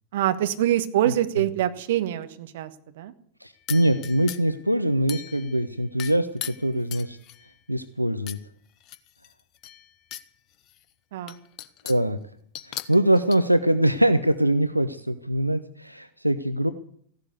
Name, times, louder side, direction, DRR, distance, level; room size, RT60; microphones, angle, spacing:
voice 1, 0.1-2.7 3.0-3.1 11.1-11.3, right 12 dB, 55° right, 10 dB, 1.3 m, -24 dB
voice 2, 3.4-7.2 7.7-8.4 11.8-12.2 12.7-16.7, right 1 dB, 90° right, 11 dB, 0.6 m, -23 dB
sound 1, 3.7-4.6 5.1-5.6 6.0-7.5 8.3-8.4 8.8-10.3 10.7-10.8 11.3-12.1 12.5-13.4, left 12 dB, 35° left, 1.0 m, -38 dB
15.0 x 11.5 x 8.2 m, 0.63 s
figure-of-eight pair, 90°, 0 cm